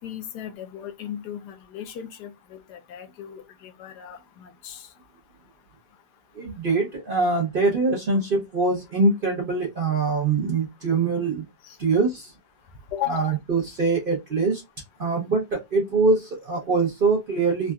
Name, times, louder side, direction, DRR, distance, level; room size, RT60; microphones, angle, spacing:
voice 1, 0.0-4.9 11.6-11.8 12.9-13.4, left 11 dB, 75° left, 1.1 m, -36 dB
voice 2, 6.3-11.4 11.8-12.3 13.1-14.6 15.0-17.7, right 3 dB, 65° right, 0.5 m, -23 dB
3.6 x 2.3 x 2.2 m
omnidirectional pair, 2.0 m